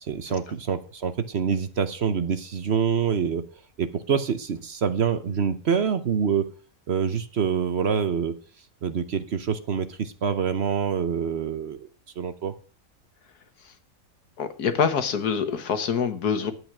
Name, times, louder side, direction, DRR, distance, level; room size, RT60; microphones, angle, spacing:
voice 1, 0.0-3.4 3.8-6.5 6.9-8.4 8.8-11.9 12.2-12.5, right 7 dB, 50° right, 11 dB, 0.9 m, -26 dB
voice 2, 14.4-16.5, left 6 dB, 85° left, 9 dB, 1.8 m, -25 dB
11.0 x 8.1 x 6.0 m, 0.39 s
omnidirectional pair, 1.6 m